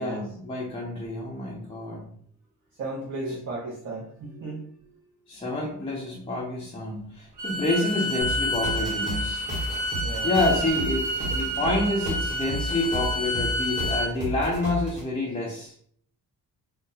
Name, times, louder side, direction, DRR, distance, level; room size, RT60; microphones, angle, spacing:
voice 1, 0.0-2.1 5.3-9.5 10.2-15.7, left 2 dB, 15° left, -5 dB, 0.4 m, -28 dB
voice 2, 2.8-5.0 10.0-10.3, right 2 dB, 50° right, -6 dB, 0.8 m, -35 dB
Bowed string instrument, 7.4-14.1, equal, 85° right, 0.7 m, -29 dB
sound 1, 8.2-15.0, right 1 dB, 20° right, 1.2 m, -33 dB
2.7 x 2.1 x 3.8 m, 0.62 s
wide cardioid pair, 165°, 39 cm